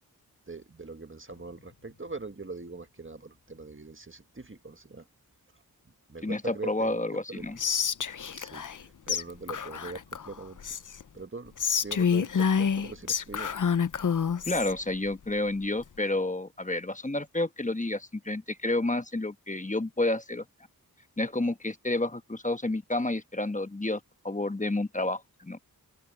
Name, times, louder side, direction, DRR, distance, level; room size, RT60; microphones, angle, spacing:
voice 1, 0.5-5.1 5.8-7.5 8.3-10.6 11.1-11.5 11.8-13.5, right 3 dB, 30° right, 1.6 m, -42 dB
sound 1, 1.2-4.9, left 4 dB, 70° left, 6.1 m, -65 dB
voice 2, 6.2-7.6 14.5-20.4 21.2-24.0 24.2-25.6, left 2 dB, 20° left, 1.1 m, -30 dB
Whispering, 7.6-8.8 9.1-9.2 9.5-11.0 11.6-14.7, left 7 dB, 55° left, 0.7 m, -28 dB
open air
wide cardioid pair, 50°, 38 cm